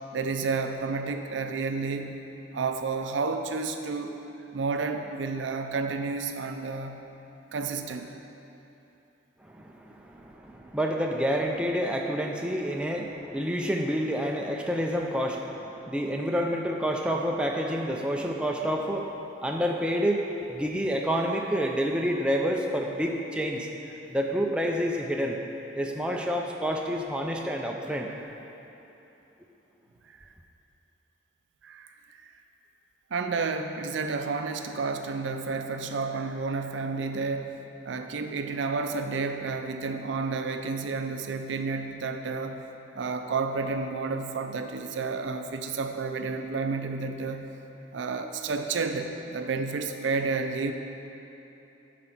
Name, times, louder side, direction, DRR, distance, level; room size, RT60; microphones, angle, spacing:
voice 1, 0.1-2.2 2.5-4.2 4.5-7.1 7.5-8.1 30.1-30.3 31.6-32.3 33.1-42.7 42.9-47.5 47.9-50.7, right 4 dB, 80° right, 6 dB, 0.5 m, -31 dB
voice 2, 9.4-19.1 19.4-23.7 24.1-25.4 25.7-28.1, equal, 5° right, 0 dB, 0.4 m, -28 dB
7.7 x 5.1 x 5.9 m, 2.9 s
head